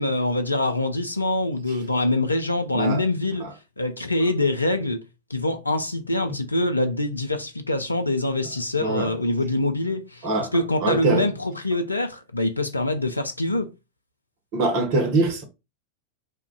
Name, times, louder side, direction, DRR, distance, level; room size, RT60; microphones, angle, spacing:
voice 1, 0.0-3.4 3.8-5.0 5.3-13.7, left 2 dB, 85° left, 0.3 m, -24 dB
voice 2, 8.8-9.1 10.2-10.5 10.8-11.3 14.5-15.4, right 3 dB, 45° right, 0.8 m, -23 dB
2.3 x 2.1 x 3.7 m
figure-of-eight pair, 90°, 0 cm